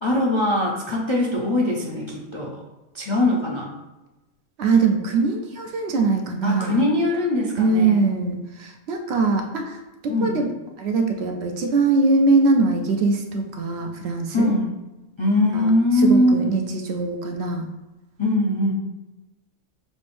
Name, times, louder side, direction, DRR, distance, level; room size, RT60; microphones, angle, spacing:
voice 1, 0.0-2.6 2.9-3.7 6.4-8.0 10.1-10.4 14.3-14.7 15.2-16.4 18.2-18.7, left 1 dB, 40° left, -3 dB, 0.4 m, -21 dB
voice 2, 4.6-6.8 7.6-10.5 10.8-14.5 15.5-15.7 16.0-17.7, right 3 dB, 65° right, 3 dB, 0.8 m, -22 dB
6.2 x 3.4 x 2.5 m, 1.0 s
omnidirectional pair, 1.3 m